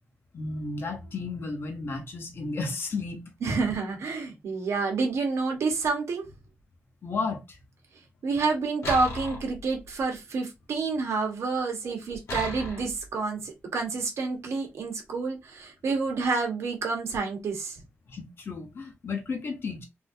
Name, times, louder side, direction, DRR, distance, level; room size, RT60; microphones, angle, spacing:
voice 1, 0.3-3.2 7.0-7.6 18.1-19.9, left 3 dB, 50° left, 0.9 m, -33 dB
voice 2, 3.4-6.3 8.2-17.8, right 4 dB, 80° right, 1.1 m, -29 dB
sound 1, 8.8-10.0 12.3-13.1, left 2 dB, 75° left, 1.2 m, -36 dB
3.6 x 2.6 x 2.6 m
wide cardioid pair, 160°, 5 cm